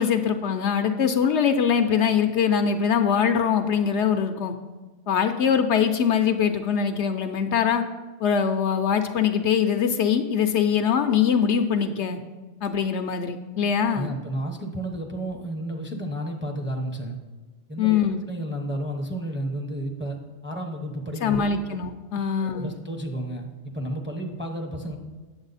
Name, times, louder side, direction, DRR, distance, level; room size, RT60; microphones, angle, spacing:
voice 1, 0.0-4.5 5.1-7.8 8.2-12.2 12.6-14.1 17.8-18.2 21.2-22.8, left 7 dB, 70° left, 8 dB, 0.8 m, -22 dB
voice 2, 13.9-17.2 17.7-21.6 22.4-25.0, right 1 dB, 10° right, 2 dB, 0.7 m, -32 dB
8.8 x 7.3 x 4.0 m, 1.3 s
omnidirectional pair, 1.3 m